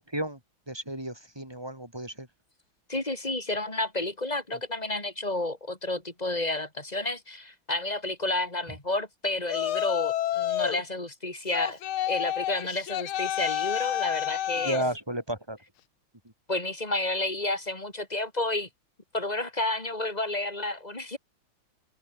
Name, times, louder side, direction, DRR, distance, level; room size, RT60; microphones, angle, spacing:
voice 1, 0.1-0.4 0.7-2.3 14.6-15.6, right 1 dB, 10° right, 7.1 m, -33 dB
voice 2, 2.9-11.8 12.1-14.8 16.5-18.7 19.1-21.2, left 2 dB, 15° left, 4.3 m, -31 dB
Yell, 9.5-10.8 11.5-14.9, left 12 dB, 75° left, 1.8 m, -29 dB
omnidirectional pair, 2.4 m